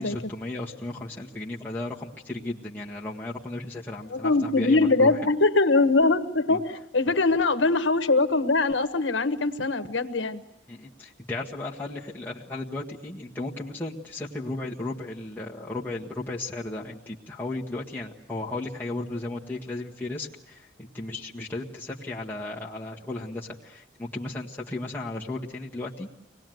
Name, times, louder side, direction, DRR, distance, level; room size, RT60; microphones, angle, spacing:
voice 1, 0.0-5.1 6.5-6.6 10.7-26.1, left 2 dB, 10° left, -5 dB, 1.6 m, -35 dB
voice 2, 4.1-10.4, left 3 dB, 80° left, 10 dB, 1.3 m, -22 dB
25.0 x 19.5 x 9.3 m, 0.89 s
head